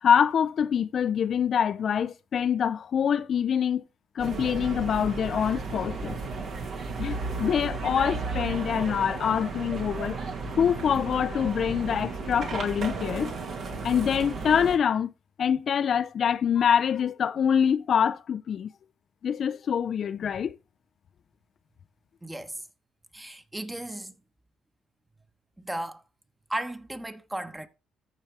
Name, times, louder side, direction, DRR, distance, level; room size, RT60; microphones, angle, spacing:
voice 1, 0.0-3.8 4.2-6.2 7.0-10.2 10.6-13.3 13.8-15.1 15.4-18.7 19.2-20.6, left 8 dB, 55° left, 0.4 m, -25 dB
sound 1, 4.2-14.8, right 4 dB, 60° right, 2.2 m, -34 dB
voice 2, 22.2-22.7 23.1-24.1 25.6-26.0 26.5-27.7, right 1 dB, 10° right, 1.1 m, -35 dB
14.0 x 4.9 x 3.4 m
cardioid pair, 80°, 0 cm